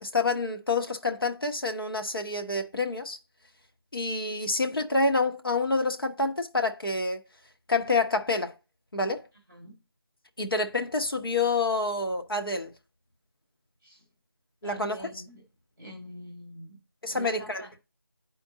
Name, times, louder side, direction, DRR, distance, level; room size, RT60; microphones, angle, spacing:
voice 1, 0.0-3.2 3.9-7.2 7.7-8.5 8.9-9.2 10.4-12.7 14.6-15.1 17.0-17.6, left 3 dB, 70° left, 1.1 m, -27 dB
voice 2, 9.5-9.8 13.8-14.1 14.6-15.4 15.8-16.8 17.1-17.7, equal, 5° left, 0.8 m, -45 dB
10.5 x 4.4 x 2.7 m
figure-of-eight pair, 175°, 12 cm